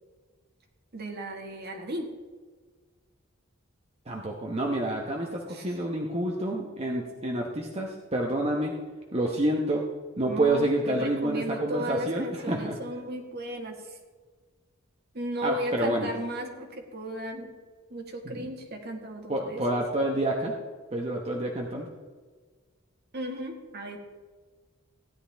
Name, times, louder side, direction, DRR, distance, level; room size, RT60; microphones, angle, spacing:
voice 1, 0.9-2.1 5.5-5.7 10.2-13.8 15.1-17.5 17.9-19.8 23.1-24.0, right 1 dB, 50° right, 3 dB, 1.7 m, -35 dB
voice 2, 4.1-8.7 9.1-9.9 10.2-12.8 15.4-16.1 18.2-18.5 19.3-20.5 20.9-21.9, right 1 dB, 30° right, 0 dB, 1.0 m, -28 dB
16.0 x 10.5 x 3.4 m, 1.5 s
head